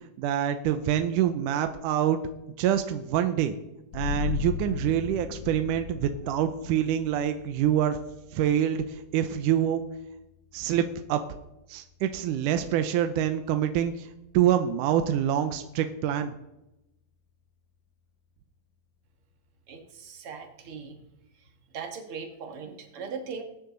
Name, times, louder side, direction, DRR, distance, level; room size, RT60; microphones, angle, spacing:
voice 1, 0.2-2.2 2.6-3.5 3.9-8.0 8.3-9.8 10.5-11.2 11.7-14.1 14.3-16.3, right 10 dB, 75° right, 8 dB, 2.1 m, -26 dB
sound 1, 3.9-15.2, left 11 dB, 85° left, 1.8 m, -39 dB
voice 2, 19.7-21.0 21.7-23.4, right 5 dB, 50° right, 4 dB, 1.8 m, -39 dB
21.5 x 9.7 x 3.9 m, 0.90 s
omnidirectional pair, 4.1 m